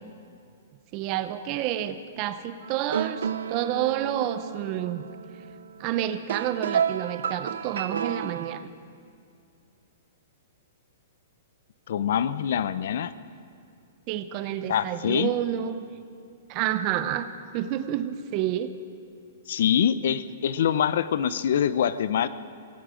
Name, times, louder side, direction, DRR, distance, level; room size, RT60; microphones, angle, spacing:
voice 1, 0.9-5.0 5.8-8.6 14.1-15.9 16.5-17.3 17.5-18.7, right 11 dB, 25° right, 12 dB, 0.5 m, -29 dB
sound 1, 2.6-8.7, right 7 dB, 80° right, 0.5 m, -32 dB
voice 2, 11.9-13.1 14.7-15.3 19.5-22.3, left 9 dB, 50° left, 15 dB, 0.5 m, -24 dB
16.5 x 16.5 x 5.0 m, 2.4 s
hypercardioid pair, 180°, 0 cm